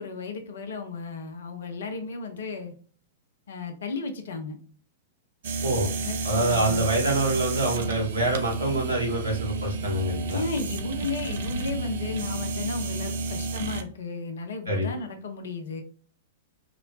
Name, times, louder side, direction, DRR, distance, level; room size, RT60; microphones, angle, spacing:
voice 1, 0.0-2.7 3.5-4.6 6.0-6.9 10.3-15.8, left 4 dB, 60° left, 6 dB, 0.5 m, -34 dB
sound 1, 5.4-13.8, right 3 dB, 55° right, 0.3 m, -31 dB
voice 2, 6.2-10.4 14.6-14.9, right 1 dB, 70° right, -3 dB, 1.3 m, -26 dB
2.9 x 2.0 x 2.5 m, 0.44 s
figure-of-eight pair, 100°, 0 cm